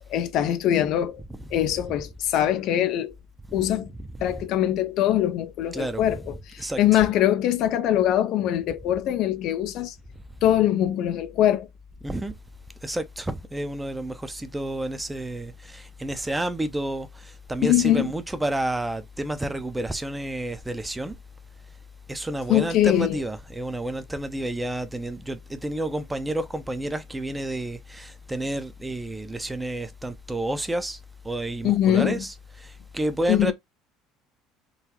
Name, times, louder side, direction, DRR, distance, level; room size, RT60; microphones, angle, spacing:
voice 1, 0.1-1.2 1.5-3.1 3.5-3.9 4.2-9.9 10.4-11.7 17.6-18.1 22.5-23.2 31.6-32.2 33.3-33.5, left 12 dB, 65° left, 0.4 m, -22 dB
voice 2, 4.0-4.5 5.7-7.0 12.0-12.3 12.8-21.1 22.1-31.0 31.2-33.5, right 1 dB, 10° right, 0.6 m, -30 dB
3.8 x 2.0 x 2.9 m
supercardioid pair, 85°, 0 cm